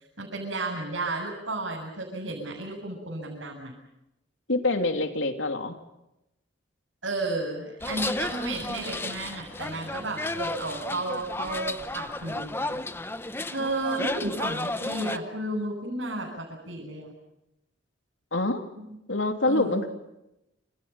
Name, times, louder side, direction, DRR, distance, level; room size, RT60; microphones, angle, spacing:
voice 1, 0.0-3.7 7.0-12.8 13.5-17.1 18.8-18.9 19.4-19.9, right 2 dB, 85° right, -3 dB, 8.0 m, -33 dB
voice 2, 4.5-5.8 18.3-18.6 19.1-19.9, left 2 dB, 85° left, 5 dB, 3.1 m, -25 dB
sound 1, 7.8-15.2, left 2 dB, 10° left, 0.9 m, -33 dB
29.0 x 28.0 x 5.9 m, 0.89 s
head